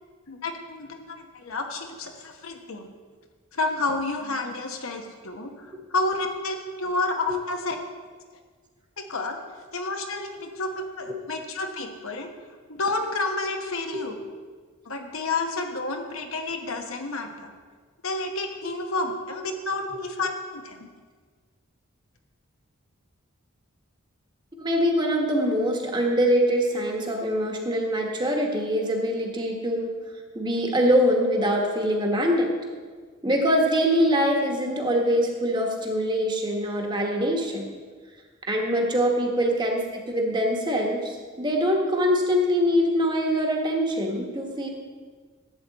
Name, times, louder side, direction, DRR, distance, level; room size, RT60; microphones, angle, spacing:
voice 1, 0.3-2.9 3.5-7.8 9.0-9.4 9.7-12.3 12.7-14.2 14.8-17.5 18.0-20.9 39.4-39.5, left 2 dB, 75° left, 4 dB, 1.1 m, -30 dB
voice 2, 24.6-29.9 30.3-32.5 33.2-37.7 38.5-44.7, equal, 20° right, 1 dB, 1.2 m, -23 dB
12.0 x 8.2 x 4.1 m, 1.6 s
head